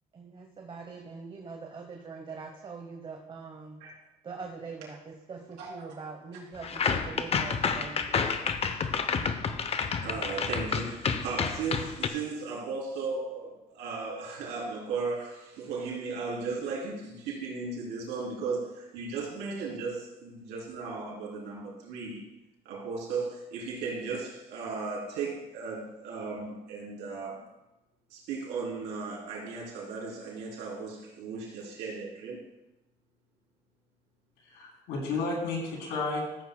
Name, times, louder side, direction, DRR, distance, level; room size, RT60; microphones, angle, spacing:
voice 1, 0.1-3.9 4.2-8.3, right 4 dB, 30° right, 2 dB, 1.0 m, -43 dB
sound 1, 6.6-12.1, left 6 dB, 35° left, 0.7 m, -30 dB
voice 2, 10.0-22.2 22.7-27.4 28.1-32.4, right 4 dB, 85° right, -4 dB, 3.5 m, -36 dB
voice 3, 34.4-36.4, left 3 dB, 90° left, -2 dB, 3.3 m, -32 dB
14.0 x 8.1 x 2.2 m, 0.96 s
cardioid pair, 110°, 17 cm